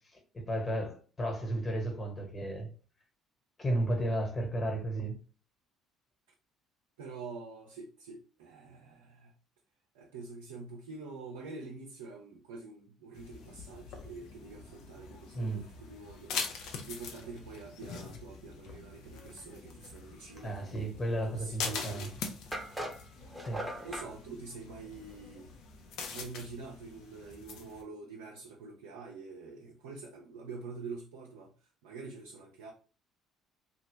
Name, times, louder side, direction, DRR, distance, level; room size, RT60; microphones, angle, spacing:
voice 1, 0.1-2.7 3.6-5.2 15.3-15.7 20.4-22.1 23.4-23.7, right 1 dB, 30° left, 1.3 m, -33 dB
voice 2, 7.0-9.3 9.9-20.9 21.2-22.1 23.7-25.5 26.1-31.5 31.8-32.7, right 4 dB, 80° right, 0.5 m, -46 dB
sound 1, 13.1-27.8, left 5 dB, 70° left, 0.6 m, -43 dB
sound 2, 22.5-24.1, right 1 dB, 10° right, 0.8 m, -39 dB
2.9 x 2.3 x 3.2 m
hypercardioid pair, 55°, 0 cm